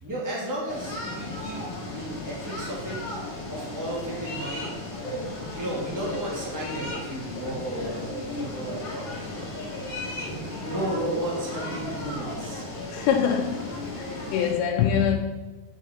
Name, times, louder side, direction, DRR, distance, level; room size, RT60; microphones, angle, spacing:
voice 1, 0.0-3.2 3.5-4.7 5.3-9.5 10.1-12.7, right 1 dB, 5° right, -5 dB, 1.4 m, -34 dB
sound 1, 0.7-14.5, left 2 dB, 55° left, 1.9 m, -35 dB
voice 2, 12.9-13.7 14.0-15.2, left 8 dB, 85° left, 2 dB, 2.5 m, -24 dB
9.1 x 5.9 x 4.4 m, 1.3 s
omnidirectional pair, 4.4 m